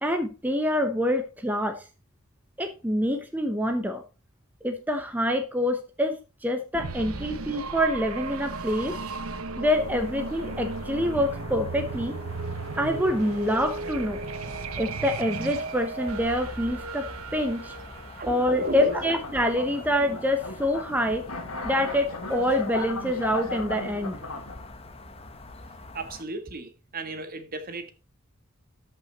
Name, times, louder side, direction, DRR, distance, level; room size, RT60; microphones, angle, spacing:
voice 1, 0.0-1.9 2.6-4.0 4.6-9.0 9.6-12.2 12.8-14.2 14.8-17.1 17.3-17.8 18.3-21.3 21.6-24.2, equal, 10° right, 0.9 m, -26 dB
sound 1, 6.7-19.4, right 3 dB, 80° right, 1.0 m, -35 dB
sound 2, 9.7-26.2, left 2 dB, 30° left, 1.1 m, -45 dB
voice 2, 18.2-18.9 25.9-27.9, right 2 dB, 45° right, 1.7 m, -35 dB
sound 3, 18.7-24.7, left 2 dB, 85° left, 2.3 m, -37 dB
13.5 x 5.9 x 4.1 m
head